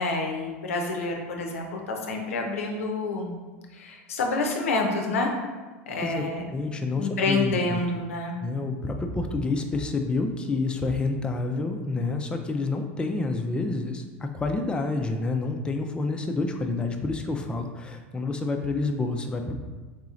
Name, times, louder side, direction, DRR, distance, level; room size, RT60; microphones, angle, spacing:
voice 1, 0.0-3.3 3.7-5.3 5.9-6.4 7.0-8.4, left 3 dB, 85° left, 2 dB, 0.5 m, -28 dB
voice 2, 6.0-7.8 8.4-19.6, left 3 dB, 15° left, 4 dB, 0.3 m, -28 dB
4.0 x 2.8 x 2.4 m, 1.3 s
hypercardioid pair, 95°, 7 cm